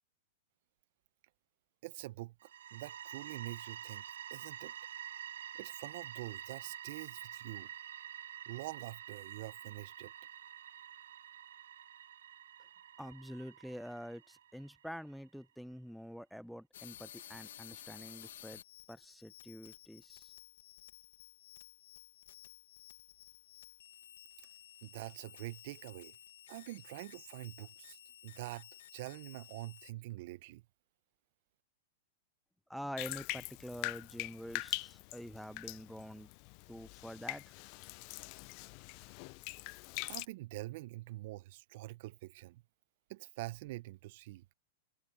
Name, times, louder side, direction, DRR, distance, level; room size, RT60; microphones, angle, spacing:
voice 1, 1.8-4.0 4.3-4.7 5.6-7.7 8.5-10.1 24.8-26.2 26.5-28.0 28.2-30.6 40.1-42.6 43.1-44.4, right 18 dB, 60° right, 0.6 m, -45 dB
sound 1, 2.4-15.1, right 10 dB, 80° right, 1.5 m, -48 dB
voice 2, 13.0-18.6 18.9-20.3 32.7-36.3 36.7-37.4, equal, ahead, 0.5 m, -46 dB
sound 2, 16.7-29.9, left 11 dB, 75° left, 1.2 m, -55 dB
Bathtub (filling or washing), 33.0-40.3, left 28 dB, 50° left, 0.5 m, -43 dB
hypercardioid pair, 125°, 0 cm